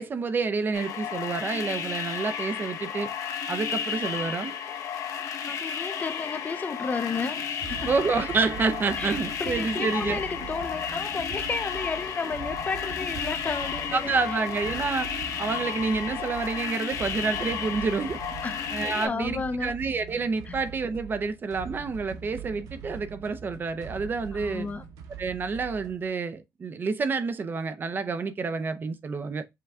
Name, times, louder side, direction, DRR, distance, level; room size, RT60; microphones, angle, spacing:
voice 1, 0.0-3.1 3.5-4.5 7.9-10.2 13.9-18.2 18.7-24.7 25.2-29.4, right 4 dB, 35° right, 0.6 m, -28 dB
sound 1, 0.7-19.1, left 8 dB, 65° left, 0.9 m, -33 dB
voice 2, 5.5-7.4 7.7-7.9 8.9-14.4 18.4-19.7 20.5-20.6 24.3-24.8, left 4 dB, 25° left, 0.4 m, -33 dB
sound 2, 6.8-16.7, right 6 dB, 75° right, 1.5 m, -47 dB
sound 3, 7.7-26.1, right 8 dB, 90° right, 0.7 m, -43 dB
5.7 x 2.2 x 3.5 m
cardioid pair, 120°, 6 cm